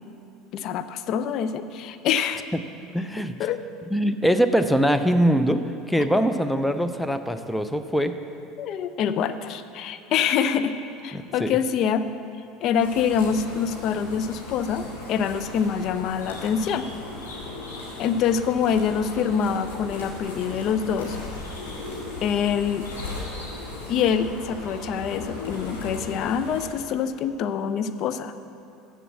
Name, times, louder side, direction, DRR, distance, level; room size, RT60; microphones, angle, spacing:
voice 1, 0.5-2.5 3.4-3.6 8.6-12.1 12.6-16.9 18.0-21.2 22.2-22.9 23.9-28.3, left 7 dB, 50° left, 11 dB, 0.5 m, -25 dB
voice 2, 2.9-3.3 3.9-5.6 5.9-8.1 11.1-11.6, equal, 5° left, 9 dB, 0.5 m, -22 dB
sound 1, 12.8-26.7, left 2 dB, 80° left, 1.9 m, -37 dB
7.5 x 6.9 x 7.3 m, 2.6 s
figure-of-eight pair, 70°, 0 cm